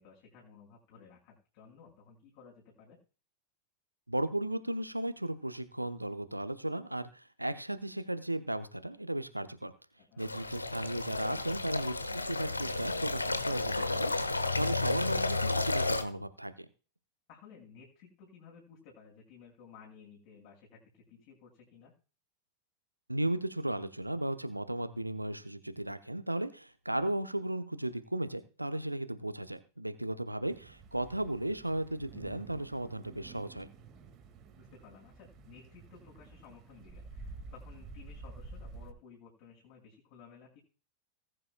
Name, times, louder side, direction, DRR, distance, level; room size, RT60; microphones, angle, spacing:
voice 1, 0.0-3.0 10.0-10.2 11.2-11.5 17.3-21.9 34.6-40.6, left 6 dB, 50° left, -2 dB, 5.5 m, -56 dB
voice 2, 4.1-9.7 10.2-16.5 23.1-33.7, right 1 dB, 85° right, 10 dB, 0.8 m, -35 dB
sound 1, 10.2-16.0, left 3 dB, 80° left, 1.1 m, -32 dB
sound 2, 30.5-38.9, right 3 dB, 30° right, 2.0 m, -50 dB
19.5 x 10.0 x 2.3 m, 0.35 s
figure-of-eight pair, 90°, 0 cm